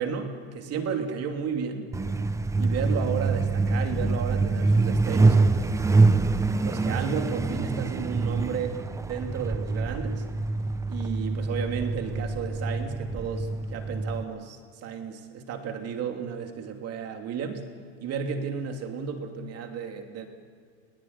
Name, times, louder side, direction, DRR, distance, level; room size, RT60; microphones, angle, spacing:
voice 1, 0.0-1.9 2.6-6.1 6.6-8.8 9.0-10.2 10.9-17.6 18.0-20.3, right 6 dB, 40° right, 4 dB, 3.0 m, -33 dB
Truck, 1.9-14.2, right 3 dB, 10° right, 0.6 m, -25 dB
20.0 x 16.5 x 9.8 m, 2.1 s
supercardioid pair, 130°, 37 cm